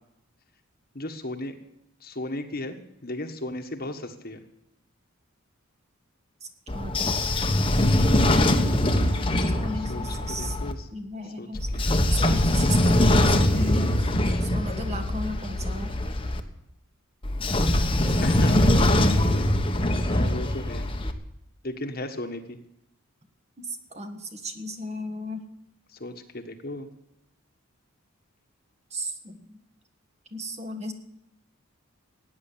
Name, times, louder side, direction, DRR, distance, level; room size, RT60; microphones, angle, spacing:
voice 1, 0.9-1.5 2.0-4.4 9.7-10.9 11.2-11.9 18.2-18.9 20.1-20.9 21.6-22.6 25.9-26.9, left 1 dB, 40° left, 6 dB, 1.5 m, -36 dB
Train / Sliding door, 6.7-10.7 11.5-16.4 17.2-21.1, left 1 dB, 25° left, 1.2 m, -22 dB
voice 2, 6.7-7.1 9.5-10.5 10.9-11.7 12.1-14.1 14.4-15.9 19.0-19.3 23.6-23.7 23.9-25.4 28.9-29.4 30.3-30.9, equal, 30° right, 6 dB, 1.7 m, -35 dB
17.0 x 9.5 x 8.7 m, 0.83 s
head